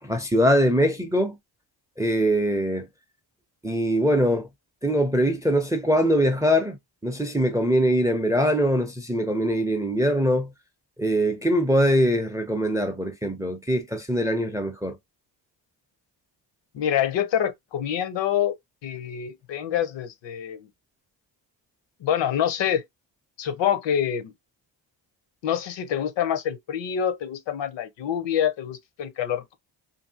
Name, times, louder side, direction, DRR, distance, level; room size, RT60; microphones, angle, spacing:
voice 1, 0.0-1.4 2.0-2.9 3.6-4.5 4.8-6.8 7.0-10.5 11.0-15.0, equal, 10° right, 0.4 m, -22 dB
voice 2, 16.7-18.5 18.8-20.7 22.0-22.8 23.4-24.3 25.4-29.5, left 9 dB, 70° left, 0.7 m, -26 dB
2.7 x 2.6 x 2.7 m
cardioid pair, 120°, 45 cm